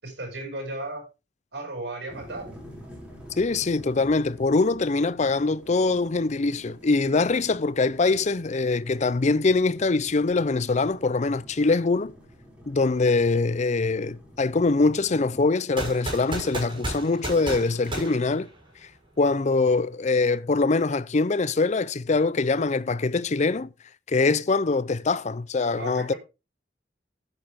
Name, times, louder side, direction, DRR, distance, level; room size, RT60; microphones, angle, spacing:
voice 1, 0.0-1.0 1.5-2.5 25.7-26.2, right 2 dB, 70° right, 6.7 m, -35 dB
sound 1, 2.1-15.4, equal, 5° right, 5.9 m, -48 dB
voice 2, 3.4-12.1 12.7-18.5 19.2-23.7 24.1-26.1, left 3 dB, 40° left, 0.5 m, -23 dB
sound 2, 15.8-18.9, right 1 dB, 30° right, 6.6 m, -33 dB
11.5 x 9.8 x 3.6 m
head